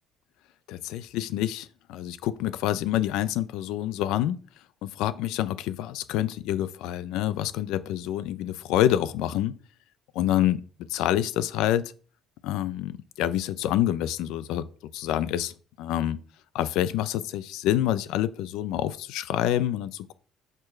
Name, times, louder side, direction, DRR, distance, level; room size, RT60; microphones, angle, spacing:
voice 1, 0.7-4.4 4.8-9.5 10.1-10.6 10.9-11.9 12.4-14.7 14.9-16.2 16.5-20.1, left 12 dB, 85° left, 0.5 m, -27 dB
6.7 x 6.0 x 3.2 m
cardioid pair, 115°, 0 cm